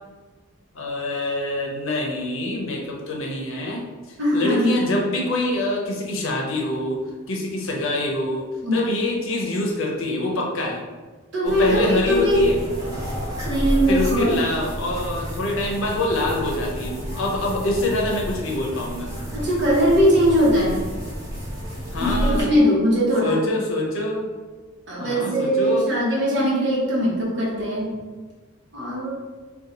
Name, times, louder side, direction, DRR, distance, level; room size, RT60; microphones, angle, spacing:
voice 1, 0.7-3.8 4.3-7.0 7.3-8.5 8.7-10.8 11.4-12.6 13.8-19.1 21.9-22.6 23.2-24.3 25.0-25.9, left 1 dB, 65° left, -1 dB, 0.7 m, -25 dB
voice 2, 4.2-4.7 8.6-8.8 11.3-12.5 14.0-14.3 19.3-20.8 22.0-23.4 24.9-27.9 28.7-29.1, equal, 55° right, -5 dB, 1.0 m, -20 dB
sound 1, 11.5-22.4, right 1 dB, 15° right, 0.8 m, -27 dB
2.8 x 2.4 x 3.8 m, 1.4 s
head